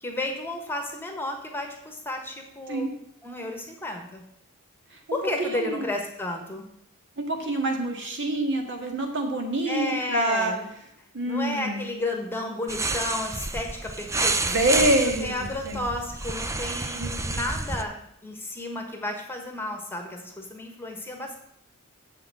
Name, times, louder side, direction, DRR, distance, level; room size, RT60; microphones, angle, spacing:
voice 1, 0.0-2.9 3.2-4.2 5.1-6.6 9.7-10.7 11.3-14.4 14.8-14.9 15.2-21.4, left 2 dB, 10° left, 3 dB, 1.3 m, -32 dB
voice 2, 4.9-5.9 7.2-10.5 11.1-11.9 14.4-15.8 16.9-17.1, right 1 dB, 55° right, 2 dB, 1.7 m, -26 dB
sound 1, 12.7-17.8, right 3 dB, 15° right, 0.4 m, -29 dB
7.5 x 5.9 x 7.6 m, 0.72 s
head